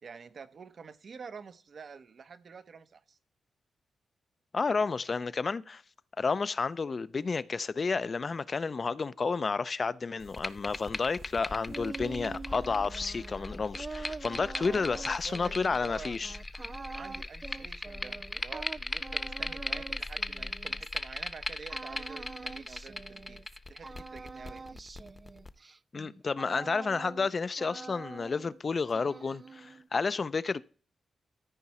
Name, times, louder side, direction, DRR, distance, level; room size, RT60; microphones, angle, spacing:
voice 1, 0.0-3.2 14.5-16.2 16.9-24.8, right 5 dB, 65° right, 0.8 m, -48 dB
voice 2, 4.5-5.8 6.2-16.3 25.9-30.6, left 4 dB, 50° left, 0.5 m, -31 dB
sound 1, 10.2-25.5, left 2 dB, 30° left, 0.9 m, -39 dB
sound 2, 11.7-21.2 21.7-23.6 23.8-27.3 27.6-28.6 28.9-29.9, right 4 dB, 40° right, 0.3 m, -45 dB
14.0 x 4.7 x 4.3 m
supercardioid pair, 45°, 0 cm